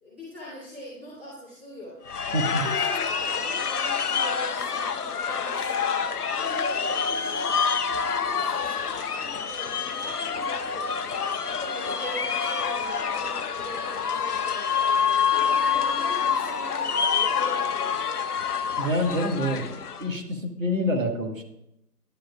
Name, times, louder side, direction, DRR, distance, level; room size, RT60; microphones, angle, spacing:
voice 1, 0.0-2.0 2.4-5.8 6.3-7.5 7.9-11.0 11.4-14.9 15.3-18.2, left 1 dB, 5° right, -14 dB, 0.9 m, -42 dB
sound 1, 2.1-20.1, left 6 dB, 70° left, 0.6 m, -27 dB
voice 2, 2.3-2.6 18.8-21.4, equal, 50° right, 3 dB, 1.2 m, -27 dB
10.0 x 6.1 x 2.3 m, 0.84 s
figure-of-eight pair, 155°, 49 cm